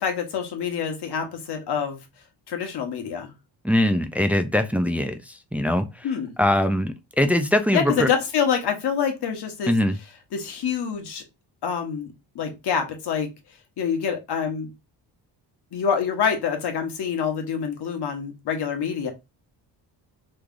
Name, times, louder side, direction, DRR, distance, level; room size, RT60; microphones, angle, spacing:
voice 1, 0.0-2.0 2.5-3.3 6.0-6.3 7.7-9.7 10.3-11.2 11.6-13.3 13.8-14.7 15.7-19.1, left 7 dB, 60° left, 1.1 m, -26 dB
voice 2, 3.6-5.9 6.4-8.1 9.7-10.0, left 1 dB, 5° right, 0.3 m, -22 dB
3.1 x 2.4 x 3.6 m
cardioid pair, 100°, 44 cm